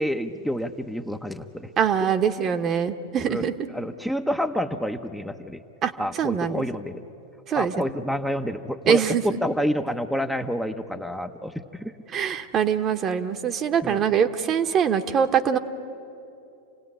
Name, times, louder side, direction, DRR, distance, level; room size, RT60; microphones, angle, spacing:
voice 1, 0.0-1.7 3.2-3.4 3.7-5.6 6.0-7.0 7.5-9.0 9.4-11.9 13.8-14.0, equal, ahead, 4 dB, 0.8 m, -28 dB
voice 2, 1.8-3.5 5.8-6.6 7.5-7.7 8.9-9.2 12.1-15.6, right 7 dB, 35° right, 8 dB, 1.1 m, -23 dB
28.0 x 17.0 x 9.9 m, 2.8 s
hypercardioid pair, 105°, 0 cm